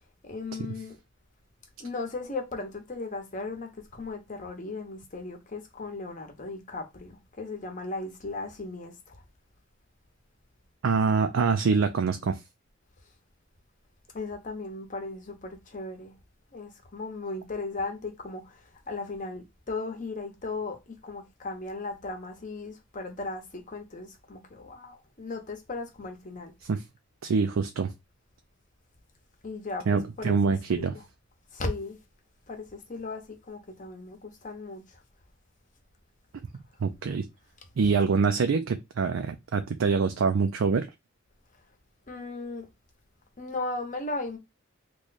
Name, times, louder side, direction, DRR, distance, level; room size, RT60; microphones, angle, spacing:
voice 1, 0.2-1.0 1.8-9.2 14.1-16.1 16.5-26.5 29.4-30.4 30.8-31.0 31.5-32.0 32.5-35.0 42.1-42.7 43.4-44.4, left 3 dB, 40° left, 0.9 m, -37 dB
voice 2, 10.8-12.4 26.6-26.8 27.2-27.9 29.9-30.9 36.8-37.3 37.8-40.9, right 5 dB, 85° right, 0.4 m, -25 dB
3.1 x 2.2 x 3.9 m
head